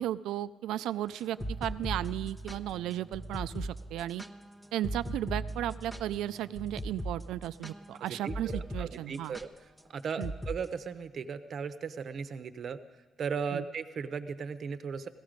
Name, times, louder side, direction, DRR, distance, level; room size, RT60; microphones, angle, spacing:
voice 1, 0.0-4.2 4.7-9.4 10.2-10.3 13.5-13.6, right 13 dB, 85° right, 14 dB, 0.4 m, -35 dB
sound 1, 1.2-8.9 9.1-9.5 10.2-10.6, equal, 10° left, 0.7 m, -38 dB
voice 2, 8.0-9.5 9.9-12.8 13.2-15.1, right 6 dB, 55° right, 9 dB, 0.8 m, -37 dB
16.5 x 13.5 x 5.1 m, 1.2 s
cardioid pair, 90°, 0 cm